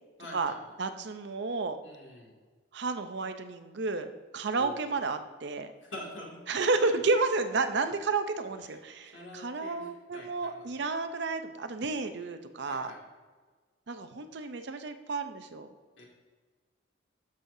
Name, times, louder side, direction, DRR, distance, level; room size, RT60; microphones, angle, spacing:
voice 1, 0.2-0.8 1.8-2.4 4.6-5.0 5.8-7.0 8.7-8.8 9.1-10.7 12.7-13.0 16.0-16.1, left 1 dB, 70° left, -2 dB, 2.2 m, -46 dB
voice 2, 0.8-1.8 2.7-5.7 6.5-12.9 13.9-15.7, right 3 dB, 60° right, 8 dB, 0.6 m, -31 dB
12.0 x 6.4 x 2.7 m, 1.4 s
head